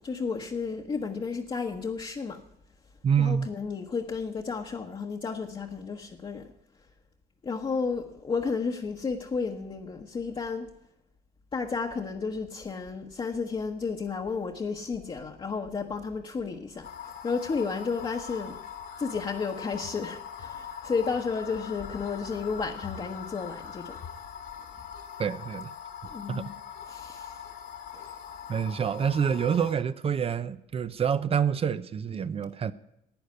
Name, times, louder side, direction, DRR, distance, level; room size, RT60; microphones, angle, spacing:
voice 1, 0.0-2.4 3.2-6.5 7.4-10.7 11.5-16.9 17.2-18.6 19.0-24.0 26.1-26.5 26.9-27.3 27.9-28.0, left 5 dB, 30° left, 1.2 m, -32 dB
voice 2, 3.0-3.5 25.2-25.7 26.3-26.4 28.5-32.7, right 7 dB, 35° right, 0.6 m, -27 dB
sound 1, 16.8-29.7, left 8 dB, 70° left, 2.2 m, -42 dB
11.5 x 9.2 x 9.7 m
cardioid pair, 110°, 17 cm